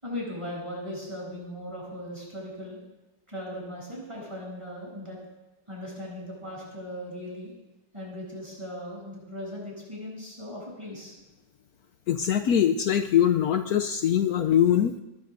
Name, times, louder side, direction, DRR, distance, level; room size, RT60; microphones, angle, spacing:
voice 1, 0.0-2.8 3.3-5.2 5.7-7.5 7.9-11.1, left 1 dB, 15° right, -5 dB, 8.1 m, -38 dB
voice 2, 12.1-15.0, left 9 dB, 80° left, 7 dB, 0.8 m, -22 dB
22.5 x 21.0 x 2.6 m, 0.98 s
omnidirectional pair, 2.3 m